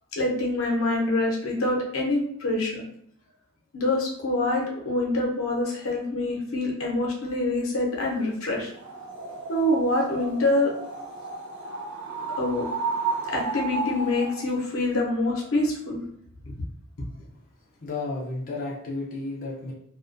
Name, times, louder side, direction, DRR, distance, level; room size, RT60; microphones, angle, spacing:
voice 1, 0.1-2.8 3.7-8.7 9.5-10.7 12.4-12.7 13.3-16.0, left 2 dB, 85° left, -2 dB, 0.7 m, -25 dB
sound 1, 8.7-14.5, right 3 dB, 60° right, 0.6 m, -33 dB
voice 2, 17.8-19.7, left 3 dB, 45° left, -4 dB, 0.4 m, -32 dB
2.3 x 2.1 x 2.5 m, 0.69 s
head